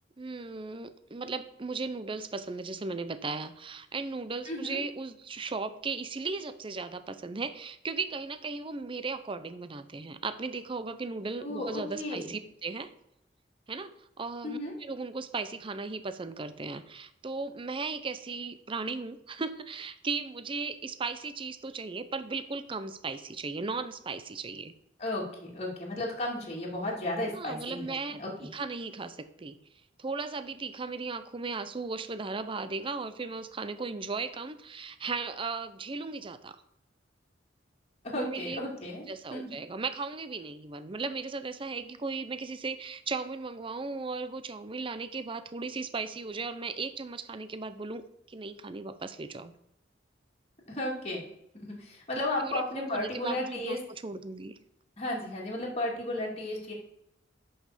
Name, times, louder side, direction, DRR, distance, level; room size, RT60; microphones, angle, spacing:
voice 1, 0.2-12.9 13.7-24.7 27.3-29.6 30.0-36.6 38.2-38.6 39.1-48.0 48.3-49.5 52.4-54.6, right 4 dB, 30° right, 12 dB, 0.6 m, -36 dB
voice 2, 4.5-4.8 11.4-12.3 14.4-14.7 25.0-28.5 38.0-39.6 50.7-51.3 51.5-53.8 55.0-56.7, left 1 dB, 35° left, -3 dB, 2.4 m, -34 dB
6.0 x 5.6 x 6.7 m, 0.81 s
head